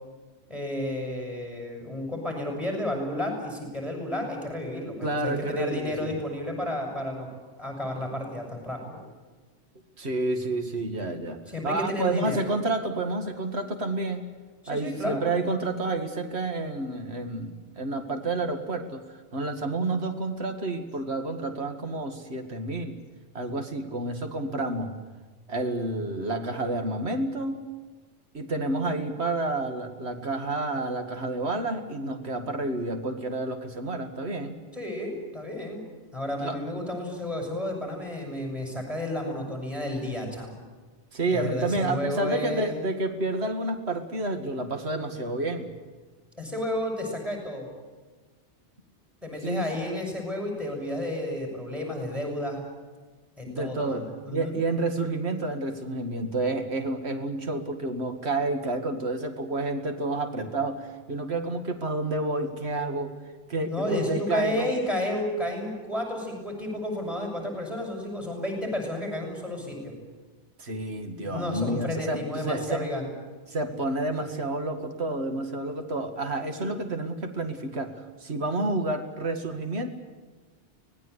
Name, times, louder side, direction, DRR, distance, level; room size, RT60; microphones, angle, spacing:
voice 1, 0.5-7.3 7.6-9.0 11.5-12.4 14.6-15.4 34.7-35.9 36.1-40.5 41.3-42.8 46.4-47.7 49.2-52.6 53.4-54.6 63.6-70.0 71.3-73.1, left 1 dB, ahead, 1 dB, 6.8 m, -32 dB
voice 2, 5.0-6.1 10.0-14.3 14.7-19.0 19.3-23.0 23.3-24.9 25.5-27.7 28.3-34.6 36.4-36.6 41.1-45.7 49.4-49.7 53.5-54.1 54.3-63.1 63.5-64.7 70.6-72.9 73.5-79.9, right 2 dB, 65° right, 6 dB, 2.4 m, -29 dB
25.0 x 19.5 x 8.2 m, 1.4 s
omnidirectional pair, 1.2 m